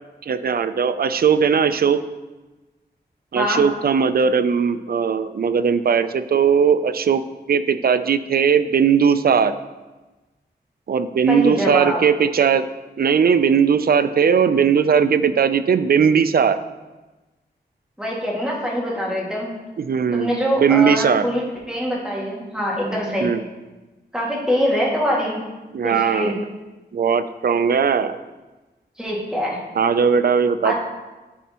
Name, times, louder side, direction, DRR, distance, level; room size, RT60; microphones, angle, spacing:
voice 1, 0.2-2.0 3.3-7.2 7.5-9.5 10.9-12.7 13.0-16.6 19.8-20.3 20.6-21.3 23.2-23.4 25.7-26.4 26.9-28.2 29.8-30.8, right 6 dB, 55° right, 12 dB, 0.4 m, -18 dB
voice 2, 11.3-12.0 18.0-19.5 20.1-23.4 24.1-25.4 25.8-26.3 29.0-29.6 30.6-30.8, equal, 5° right, -5 dB, 2.0 m, -23 dB
11.0 x 4.2 x 2.9 m, 1.2 s
wide cardioid pair, 70°, 18 cm